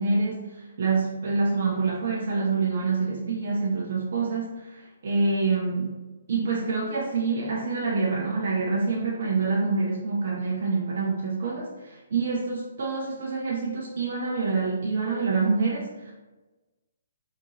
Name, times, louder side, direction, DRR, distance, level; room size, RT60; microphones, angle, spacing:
voice 1, 0.0-5.9 6.3-16.1, right 4 dB, 60° right, -3 dB, 0.5 m, -26 dB
2.9 x 2.5 x 2.7 m, 1.1 s
hypercardioid pair, 140°, 0 cm